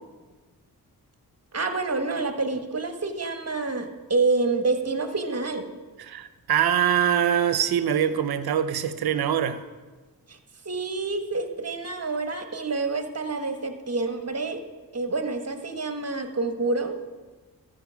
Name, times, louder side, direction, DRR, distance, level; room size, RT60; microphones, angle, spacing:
voice 1, 1.5-5.7 10.3-10.4 10.6-14.6 14.9-17.0, right 3 dB, 40° right, 1.4 m, -27 dB
voice 2, 6.1-9.6, right 9 dB, 75° right, 0.8 m, -23 dB
13.0 x 5.1 x 7.4 m
cardioid pair, 50°, 37 cm